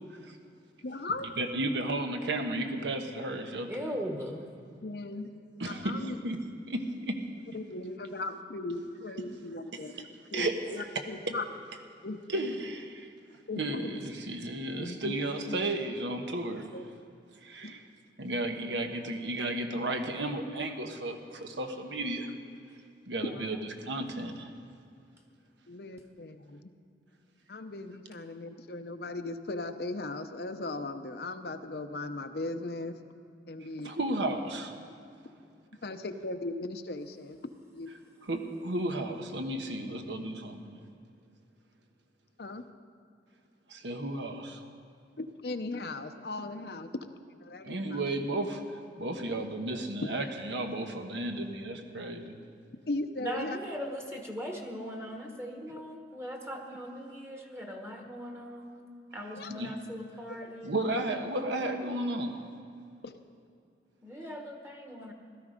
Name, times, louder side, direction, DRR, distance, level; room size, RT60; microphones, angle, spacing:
voice 1, 0.8-1.3 4.8-5.3 5.7-6.2 7.5-11.4 12.0-12.2 13.5-14.1 14.4-14.5 14.8-15.2 15.4-15.6 16.7-16.8 17.6-17.7 23.3-23.5 25.7-26.7 27.5-33.0 33.5-33.9 35.8-37.4 37.7-37.9 42.4-42.6 45.2-46.9 47.4-48.0 52.9-53.6 55.7-55.8 59.3-59.6 60.4-60.5 63.0-63.1, left 2 dB, 60° left, 8 dB, 0.7 m, -38 dB
voice 2, 1.4-4.0 5.6-6.4 6.7-7.2 10.3-10.5 10.9-11.0 12.3-13.1 13.6-16.7 17.4-17.8 18.2-22.3 23.1-23.6 23.9-24.5 33.8-34.7 38.2-40.8 43.7-44.6 47.6-48.6 49.0-52.4 59.4-59.7 60.6-62.4, right 1 dB, 85° right, 5 dB, 1.2 m, -33 dB
voice 3, 3.7-4.5 53.2-60.8 64.0-65.1, equal, 15° right, 2 dB, 1.2 m, -39 dB
16.5 x 13.0 x 5.1 m, 2.4 s
head